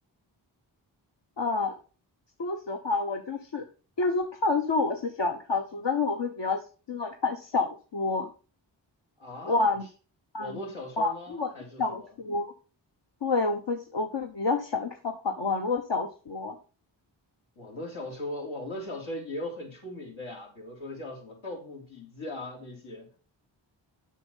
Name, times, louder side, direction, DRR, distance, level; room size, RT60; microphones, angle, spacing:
voice 1, 1.4-1.8 2.4-3.6 4.0-8.3 9.4-9.8 10.3-10.6 11.0-11.5 11.8-12.5 13.2-16.5, left 3 dB, 65° left, 1.1 m, -28 dB
voice 2, 9.2-9.7 10.4-12.1 17.5-23.1, left 1 dB, 80° left, 3.4 m, -39 dB
7.6 x 6.4 x 5.4 m
cardioid pair, 50°, 46 cm